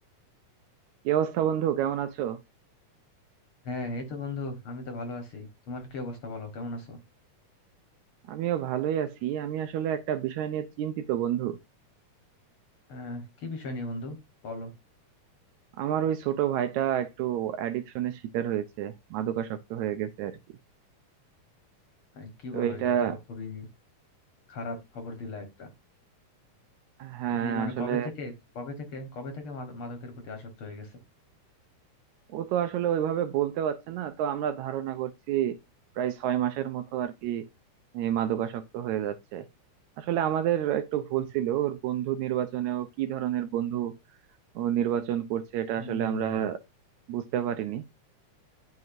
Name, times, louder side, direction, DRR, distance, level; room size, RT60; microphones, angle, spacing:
voice 1, 1.1-2.4 8.3-11.6 15.8-20.4 22.5-23.2 27.0-28.1 32.3-35.6 36.0-37.5 37.9-39.5 40.0-44.0 44.6-46.6 47.1-47.8, right 10 dB, 80° right, 1.8 m, -29 dB
voice 2, 3.6-7.0 12.9-14.2 14.4-14.7 22.2-23.7 24.5-25.7 27.3-31.0 45.8-46.5, left 2 dB, 55° left, 1.8 m, -37 dB
11.0 x 5.3 x 2.6 m
omnidirectional pair, 3.7 m